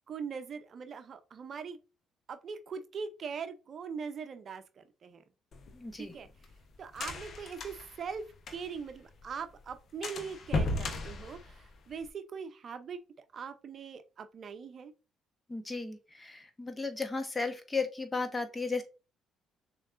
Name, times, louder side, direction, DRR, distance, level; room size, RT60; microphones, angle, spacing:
voice 1, 0.1-1.8 2.3-5.2 6.0-6.3 6.8-8.2 8.5-13.0 13.3-14.9, right 6 dB, 50° right, 0.6 m, -41 dB
sound 1, 5.5-8.9 9.2-9.3 9.6-9.7 10.0-12.1, left 2 dB, 55° left, 1.0 m, -36 dB
voice 2, 5.7-6.1 15.5-18.8, left 4 dB, 20° left, 1.1 m, -35 dB
6.4 x 3.1 x 2.6 m
hypercardioid pair, 60°, 0 cm